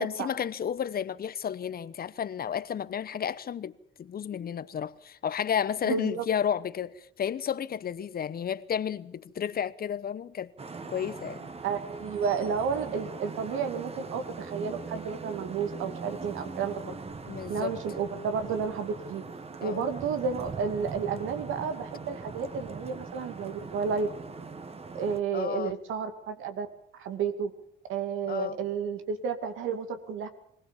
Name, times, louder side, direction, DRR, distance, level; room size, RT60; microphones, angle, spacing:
voice 1, 0.0-3.7 4.0-10.5 10.9-11.5 16.9-17.0 17.3-17.7 19.6-19.8 25.3-25.7 28.3-28.6, left 8 dB, 50° left, 0.9 m, -32 dB
voice 2, 5.9-6.2 11.6-17.0 17.5-19.2 19.6-24.1 24.9-26.7 27.0-27.5 27.9-30.3, right 6 dB, 85° right, 2.5 m, -31 dB
Vehicle horn car horn honking / Traffic noise roadway noise, 10.6-25.2, right 4 dB, 30° right, 1.7 m, -41 dB
23.0 x 17.0 x 7.3 m
cardioid pair, 90°, 20 cm